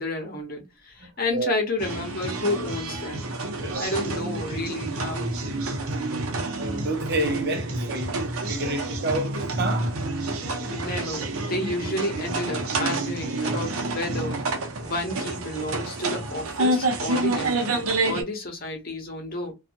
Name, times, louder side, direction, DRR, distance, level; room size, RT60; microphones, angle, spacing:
voice 1, 0.0-3.2 3.6-5.3 10.6-14.4 14.8-19.5, left 2 dB, 45° left, 0.9 m, -31 dB
voice 2, 1.0-1.5 3.6-3.9 5.8-6.1 6.6-8.2 8.5-10.0, right 2 dB, 50° right, 0.7 m, -29 dB
sound 1, 1.8-18.2, right 2 dB, 85° right, 0.7 m, -28 dB
2.6 x 2.4 x 2.5 m
head